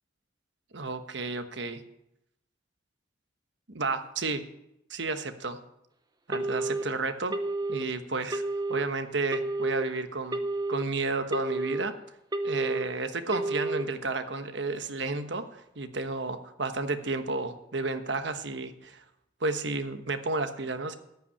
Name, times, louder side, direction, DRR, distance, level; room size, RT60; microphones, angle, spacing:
voice 1, 0.7-1.8 3.7-4.4 4.9-5.6 6.3-7.3 7.7-8.4 8.7-10.4 10.7-11.9 12.4-19.0 19.4-21.0, right 3 dB, 70° right, 9 dB, 1.2 m, -32 dB
Telephone, 6.3-6.8 7.3-7.8 8.3-8.8 9.3-9.8 10.3-10.8 11.3-11.8 12.3-12.8 13.3-13.8, right 2 dB, 20° right, 0.9 m, -30 dB
14.0 x 5.8 x 9.8 m, 0.83 s
head